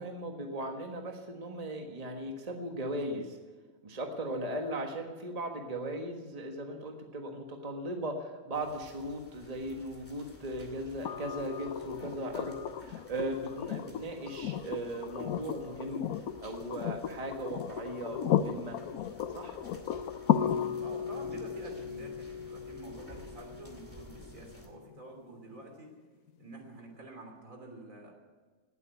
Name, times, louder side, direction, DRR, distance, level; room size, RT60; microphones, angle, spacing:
voice 1, 0.0-3.4 3.8-18.8 19.3-19.6, right 1 dB, 25° right, 3 dB, 1.5 m, -38 dB
sound 1, 8.5-24.7, right 1 dB, 10° left, 2.4 m, -55 dB
sound 2, 11.1-25.0 26.7-26.8, left 9 dB, 90° left, 1.2 m, -35 dB
voice 2, 20.3-25.9 26.4-28.1, right 2 dB, 70° right, 2 dB, 3.6 m, -48 dB
18.5 x 8.2 x 9.3 m, 1.4 s
omnidirectional pair, 1.5 m